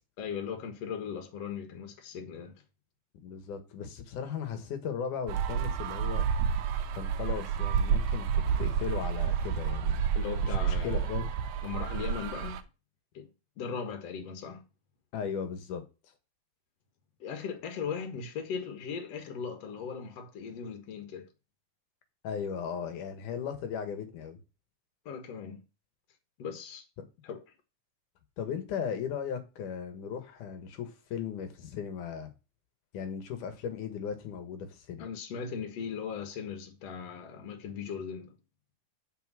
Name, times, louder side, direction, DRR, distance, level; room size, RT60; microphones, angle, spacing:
voice 1, 0.2-2.5 10.2-11.1 11.6-12.6 13.1-13.3 13.6-14.6 17.2-21.3 25.1-25.6 26.4-26.9 27.2-27.4 35.0-38.4, left 6 dB, 60° left, 2.5 m, -38 dB
voice 2, 3.2-6.3 6.9-10.0 10.4-10.5 10.8-11.3 15.1-15.8 22.2-24.4 28.4-32.3 32.9-35.1, left 7 dB, 85° left, 3.1 m, -37 dB
sound 1, 5.3-12.6, right 7 dB, 70° right, 2.0 m, -30 dB
7.0 x 5.9 x 7.6 m
omnidirectional pair, 3.5 m